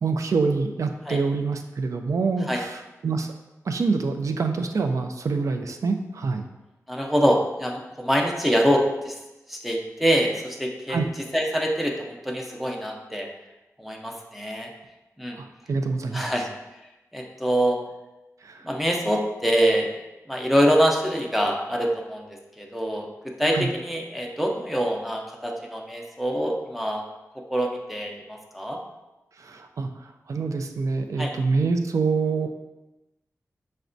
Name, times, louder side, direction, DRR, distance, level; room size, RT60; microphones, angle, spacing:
voice 1, 0.0-3.3 3.7-6.4 10.9-11.1 15.4-16.3 18.4-18.7 23.5-23.7 29.4-29.9 30.3-32.5, right 4 dB, 70° right, 6 dB, 0.3 m, -26 dB
voice 2, 6.9-9.1 9.5-11.0 11.3-13.3 13.8-14.7 15.2-15.4 16.1-16.5 17.1-17.8 18.6-19.9 20.3-22.3 22.6-23.1 23.4-27.0 27.5-28.8 31.2-31.3, equal, ahead, 0 dB, 0.5 m, -24 dB
5.7 x 2.1 x 2.5 m, 1.0 s
wide cardioid pair, 85°, 6 cm